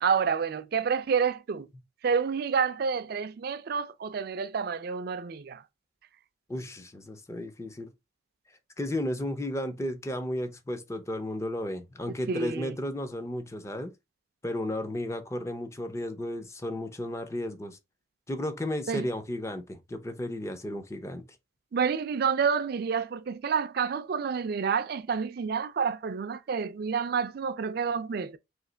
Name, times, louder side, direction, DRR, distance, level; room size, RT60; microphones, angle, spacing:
voice 1, 0.0-1.7 2.0-5.6 12.3-12.7 18.9-19.1 21.7-28.4, right 6 dB, 50° right, 0.3 m, -29 dB
voice 2, 6.5-7.9 8.8-13.9 14.4-17.8 18.3-21.2, left 1 dB, 15° left, 0.4 m, -34 dB
3.2 x 2.8 x 3.8 m
head